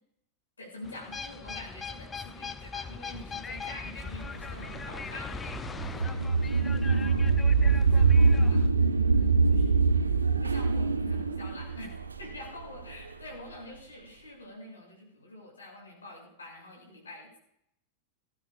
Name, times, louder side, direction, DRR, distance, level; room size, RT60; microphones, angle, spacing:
voice 1, 0.6-8.9 9.2-9.8 10.4-17.4, left 1 dB, 75° left, -1 dB, 6.6 m, -47 dB
sound 1, 0.8-8.7, left 5 dB, 15° left, 0.6 m, -40 dB
sound 2, 4.2-13.1, right 4 dB, 75° right, 0.9 m, -24 dB
20.0 x 15.0 x 2.5 m, 0.74 s
figure-of-eight pair, 90°, 0 cm